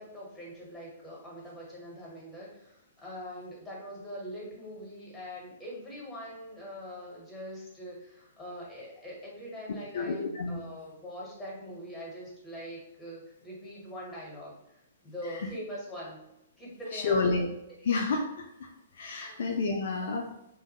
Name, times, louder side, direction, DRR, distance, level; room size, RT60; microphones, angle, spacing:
voice 1, 0.0-16.2 16.6-17.3 19.2-19.4 20.0-20.2, equal, 10° left, -5 dB, 1.2 m, -43 dB
voice 2, 9.9-10.6 16.9-17.5 17.8-20.3, left 4 dB, 55° left, 2 dB, 0.3 m, -30 dB
2.6 x 2.1 x 2.8 m, 0.84 s
figure-of-eight pair, 115°, 0 cm